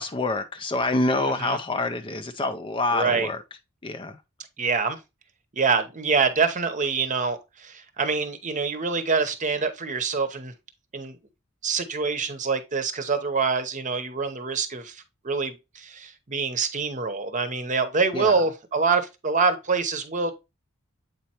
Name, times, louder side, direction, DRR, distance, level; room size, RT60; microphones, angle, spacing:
voice 1, 0.0-3.4 3.8-4.2 18.1-18.3, left 2 dB, 25° left, 0.4 m, -26 dB
voice 2, 1.2-1.6 2.9-3.3 4.6-5.0 5.5-10.5 10.9-11.2 11.6-20.3, right 4 dB, 35° right, 0.8 m, -25 dB
8.0 x 4.4 x 2.9 m
head